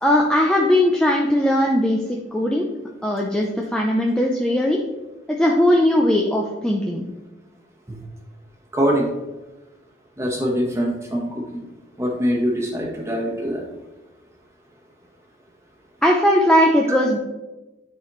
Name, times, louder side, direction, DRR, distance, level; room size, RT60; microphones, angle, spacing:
voice 1, 0.0-2.7 3.0-4.8 5.3-7.0 16.0-17.2, left 1 dB, 5° left, -1 dB, 0.4 m, -19 dB
voice 2, 8.7-9.1 10.2-11.4 12.0-13.6, equal, 15° right, -1 dB, 1.1 m, -23 dB
9.9 x 4.2 x 3.1 m, 1.1 s
head